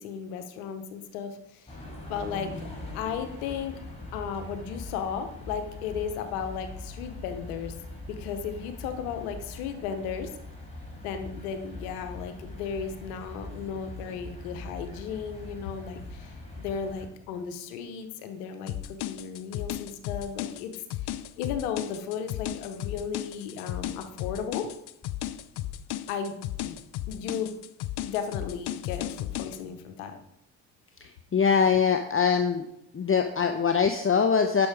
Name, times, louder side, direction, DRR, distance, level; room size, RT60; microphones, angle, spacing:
voice 1, 0.0-1.8 2.1-2.7 2.9-3.8 4.1-7.7 8.1-10.3 11.0-20.7 21.0-24.7 26.1-27.5 28.0-30.2, left 7 dB, 90° left, 8 dB, 1.0 m, -35 dB
sound 1, 1.7-17.1, left 2 dB, 15° left, 4.3 m, -42 dB
sound 2, 18.7-29.6, left 12 dB, 65° left, 0.6 m, -35 dB
voice 2, 31.0-32.6 32.9-34.7, left 6 dB, 30° left, 6 dB, 0.9 m, -23 dB
10.5 x 6.2 x 4.8 m, 0.83 s
hypercardioid pair, 50°, 43 cm